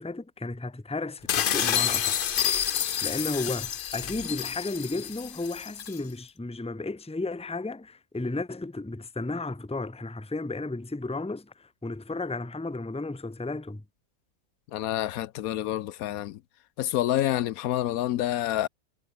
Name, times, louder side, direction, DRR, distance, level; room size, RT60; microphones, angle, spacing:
voice 1, 0.0-2.3 3.0-13.8, left 2 dB, 5° left, 0.9 m, -33 dB
sound 1, 1.3-6.0, left 9 dB, 50° left, 0.7 m, -28 dB
voice 2, 14.7-16.4 16.8-18.7, left 13 dB, 80° left, 1.1 m, -28 dB
omnidirectional pair, 1.5 m